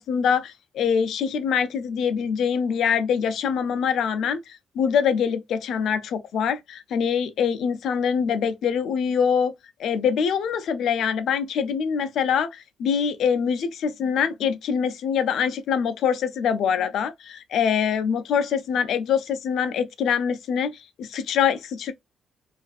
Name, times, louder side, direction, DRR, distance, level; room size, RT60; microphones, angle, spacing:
voice 1, 0.0-9.5 9.8-21.9, left 7 dB, 75° left, 0.4 m, -24 dB
2.4 x 2.4 x 2.2 m
cardioid pair, 90°, 0 cm